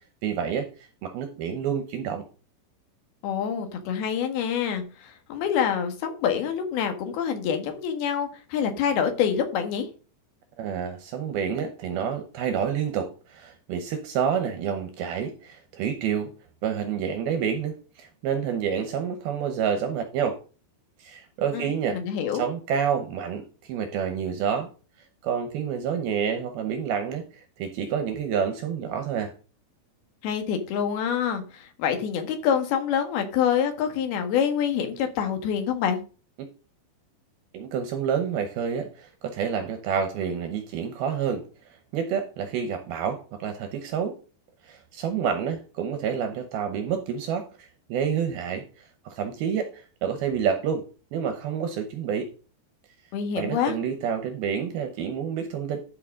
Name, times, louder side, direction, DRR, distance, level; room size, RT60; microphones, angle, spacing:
voice 1, 0.2-0.7 1.0-2.2 10.6-16.3 16.6-20.4 21.0-22.0 22.3-24.7 25.2-29.3 36.4-36.5 37.5-41.4 41.9-44.2 44.6-52.3 53.4-55.8, right 7 dB, 75° right, 7 dB, 2.4 m, -28 dB
voice 2, 3.2-9.9 21.5-21.7 21.9-22.5 30.2-36.0 53.1-53.7, left 8 dB, 65° left, 5 dB, 3.2 m, -26 dB
12.5 x 5.7 x 3.7 m, 0.35 s
omnidirectional pair, 5.3 m